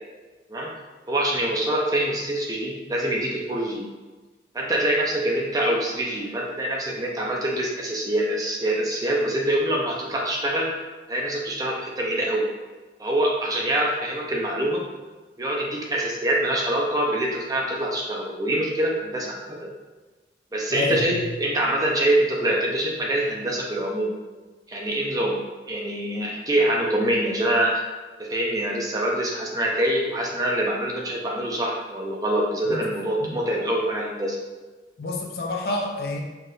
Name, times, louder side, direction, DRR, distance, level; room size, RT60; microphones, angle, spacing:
voice 1, 1.1-3.8 4.5-10.7 11.1-12.5 13.0-14.8 15.4-19.7 20.5-24.1 24.7-27.8 28.2-34.4, right 1 dB, 20° right, -2 dB, 0.5 m, -25 dB
voice 2, 20.7-21.2 32.7-32.8 33.2-33.3 35.0-36.2, left 2 dB, 55° left, 1 dB, 0.5 m, -28 dB
4.6 x 2.5 x 3.2 m, 1.2 s
head